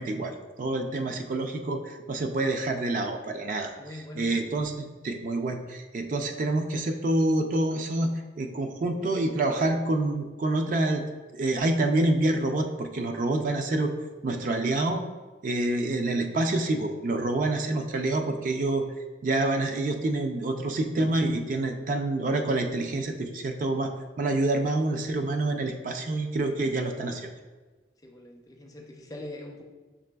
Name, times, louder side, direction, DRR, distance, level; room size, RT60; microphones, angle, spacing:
voice 1, 0.0-8.1 8.4-11.0 11.3-13.9 14.2-15.0 15.4-18.9 19.2-27.3, right 2 dB, 45° right, 5 dB, 0.3 m, -27 dB
voice 2, 3.8-4.4 13.6-13.9 26.3-27.2 28.0-29.6, left 1 dB, 20° left, 1 dB, 0.4 m, -43 dB
5.9 x 3.2 x 2.2 m, 1.3 s
head